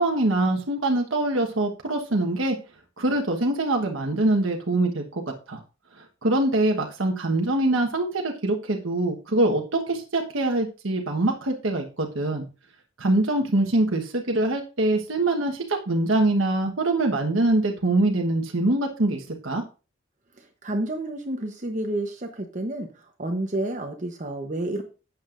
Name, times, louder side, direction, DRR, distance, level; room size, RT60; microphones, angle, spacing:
voice 1, 0.0-2.6 3.0-5.2 5.5-5.6 6.0-12.4 13.0-19.6, right 2 dB, 80° right, 2 dB, 1.3 m, -24 dB
voice 2, 20.4-24.8, right 1 dB, 40° right, 4 dB, 0.9 m, -30 dB
11.5 x 8.6 x 2.5 m, 0.33 s
head